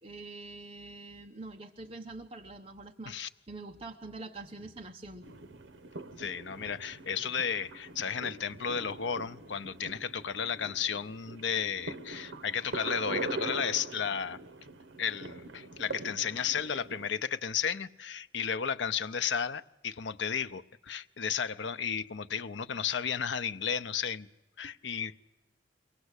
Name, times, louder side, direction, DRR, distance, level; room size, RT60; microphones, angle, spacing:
voice 1, 0.0-5.3, right 2 dB, 30° right, 0.8 m, -45 dB
sound 1, 5.2-17.1, right 3 dB, 80° right, 0.9 m, -42 dB
voice 2, 6.2-14.4 15.0-24.3 24.6-25.2, left 7 dB, 70° left, 0.6 m, -33 dB
22.5 x 18.0 x 8.1 m
head